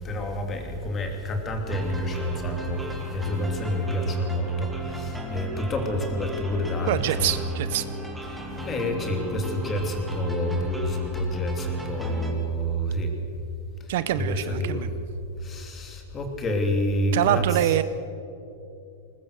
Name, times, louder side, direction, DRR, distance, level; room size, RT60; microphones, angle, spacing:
voice 1, 0.0-6.9 8.3-13.1 13.8-13.9 14.2-14.9 15.4-17.4, equal, 20° left, 3 dB, 2.8 m, -28 dB
sound 1, 1.7-12.3, right 1 dB, 5° right, 2.3 m, -35 dB
voice 2, 6.9-7.9 13.9-14.9 17.1-17.8, right 12 dB, 60° right, 13 dB, 0.9 m, -25 dB
21.0 x 19.5 x 6.7 m, 2.7 s
supercardioid pair, 160°, 0 cm